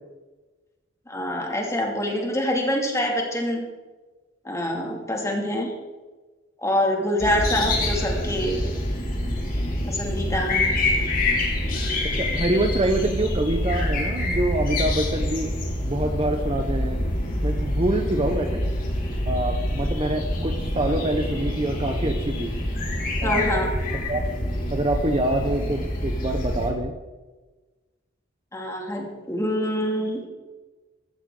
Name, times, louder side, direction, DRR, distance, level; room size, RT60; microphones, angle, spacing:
voice 1, 1.1-3.7 4.4-5.7 6.6-8.7 9.9-10.7 23.2-23.7 28.5-30.2, left 1 dB, 15° left, 0 dB, 2.4 m, -25 dB
sound 1, 7.2-26.7, left 1 dB, 50° left, 3.2 m, -26 dB
voice 2, 12.1-15.5 15.8-17.0 17.4-18.6 19.2-22.5 23.2-23.6 23.9-24.2 24.7-26.9, right 1 dB, 30° right, 6 dB, 0.8 m, -26 dB
14.5 x 13.5 x 3.8 m, 1.3 s
head